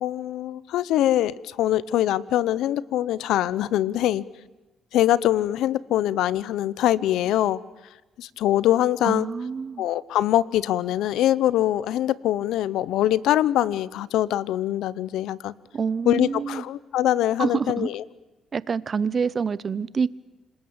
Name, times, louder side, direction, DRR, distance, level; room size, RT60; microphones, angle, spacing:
voice 1, 0.0-4.2 4.9-7.6 8.2-9.3 9.8-15.5 16.1-18.0, left 13 dB, 85° left, 0.8 m, -23 dB
voice 2, 9.0-9.8 15.7-16.6 17.4-17.9 18.5-20.1, right 5 dB, 40° right, 0.8 m, -26 dB
27.5 x 20.0 x 8.8 m
cardioid pair, 90°, 0 cm